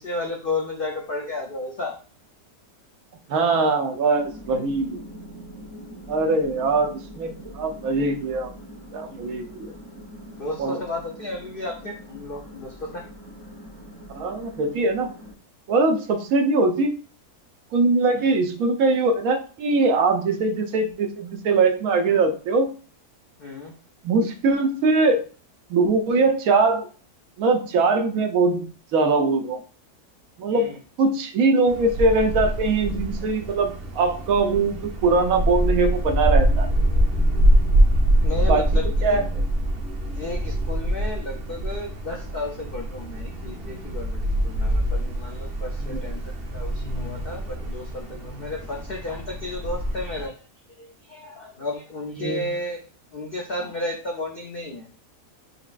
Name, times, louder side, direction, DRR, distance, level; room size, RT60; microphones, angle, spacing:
voice 1, 0.0-2.0 10.4-13.0 18.1-18.3 23.4-23.7 30.5-30.8 38.2-39.2 40.1-50.5 50.8-52.8 53.1-54.9, left 2 dB, 70° left, 0 dB, 0.5 m, -33 dB
voice 2, 3.3-5.0 6.1-8.5 8.9-9.7 10.6-10.8 14.1-15.1 15.7-16.9 17.7-22.7 24.0-25.3 25.7-26.9 27.4-29.6 30.4-30.7 31.0-36.7 38.5-38.6 39.0-39.4 45.9-46.1 52.2-52.5, right 3 dB, 70° right, 5 dB, 1.1 m, -22 dB
sound 1, 4.2-15.3, equal, 25° left, 0.8 m, -43 dB
Wind, 31.7-50.3, right 1 dB, 45° right, 1.0 m, -24 dB
4.7 x 3.0 x 2.4 m, 0.38 s
omnidirectional pair, 1.6 m